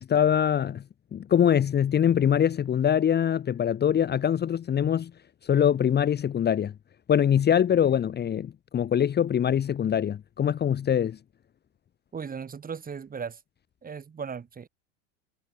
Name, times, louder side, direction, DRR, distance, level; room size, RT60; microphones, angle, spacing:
voice 1, 0.1-0.8 1.1-5.1 5.4-6.7 7.1-11.2, left 9 dB, 25° left, 1.3 m, -23 dB
voice 2, 12.1-13.4 13.8-14.7, right 6 dB, 20° right, 4.4 m, -37 dB
supercardioid pair, 110°, 38 cm